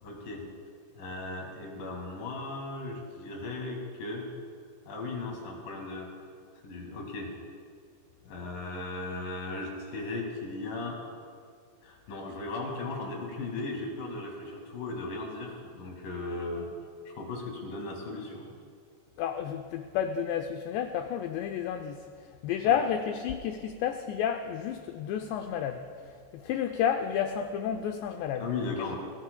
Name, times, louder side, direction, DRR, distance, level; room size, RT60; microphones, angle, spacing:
voice 1, 0.0-0.5 0.9-4.3 4.9-6.1 6.6-7.3 8.2-11.0 11.8-16.7 17.0-18.5 22.6-22.8 28.4-29.0, left 3 dB, 55° left, 0 dB, 3.2 m, -37 dB
voice 2, 19.2-22.0 22.4-28.4, left 8 dB, 85° left, 6 dB, 2.5 m, -31 dB
23.5 x 17.5 x 2.2 m, 2.2 s
omnidirectional pair, 5.6 m